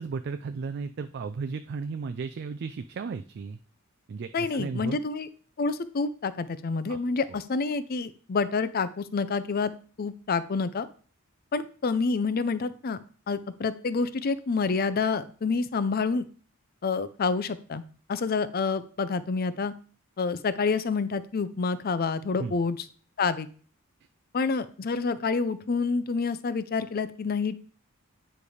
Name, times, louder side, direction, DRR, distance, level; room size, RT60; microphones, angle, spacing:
voice 1, 0.0-3.6 4.1-5.0 6.9-7.0 7.3-7.4 22.4-22.5, right 5 dB, 50° right, 9 dB, 0.3 m, -34 dB
voice 2, 4.3-5.3 5.6-9.7 10.0-10.9 11.5-13.0 13.3-16.3 16.8-17.8 18.1-19.7 20.2-22.8 23.2-23.5 24.3-27.6, left 4 dB, 45° left, 13 dB, 0.5 m, -28 dB
9.3 x 3.3 x 4.9 m, 0.42 s
head